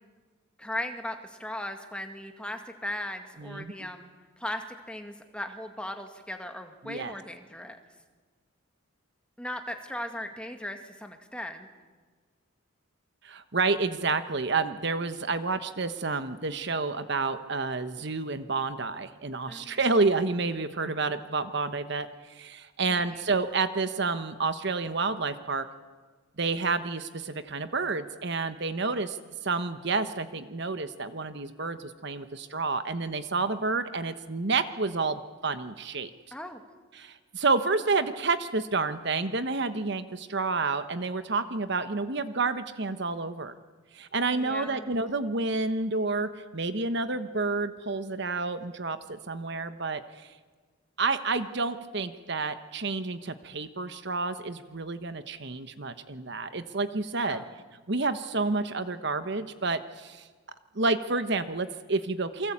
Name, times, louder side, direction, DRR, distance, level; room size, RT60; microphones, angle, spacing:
voice 1, 0.6-4.1 4.4-7.8 9.4-11.7 19.5-19.8 22.9-23.2 36.3-36.6 44.3-44.9 57.2-57.6, left 1 dB, 5° left, 5 dB, 2.0 m, -38 dB
voice 2, 3.4-3.7 6.8-7.2 13.2-25.7 26.4-29.2 29.4-36.1 36.9-43.5 43.9-50.3 51.0-57.4 57.9-60.3 60.7-62.5, right 3 dB, 55° right, 11 dB, 1.1 m, -29 dB
28.5 x 23.5 x 8.7 m, 1.4 s
head